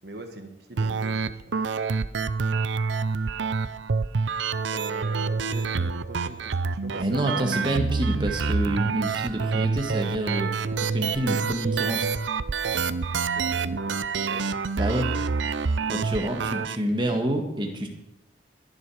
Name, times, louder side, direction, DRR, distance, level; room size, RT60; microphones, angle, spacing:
voice 1, 0.0-1.4 4.7-7.5 13.3-14.5, right 2 dB, 60° right, 6 dB, 1.5 m, -42 dB
sound 1, 0.8-16.8, right 4 dB, 80° right, 0.6 m, -27 dB
voice 2, 7.0-10.5 10.8-12.1 14.8-15.1 15.9-17.9, right 1 dB, 25° right, 2 dB, 1.7 m, -28 dB
22.0 x 7.4 x 4.9 m, 0.85 s
head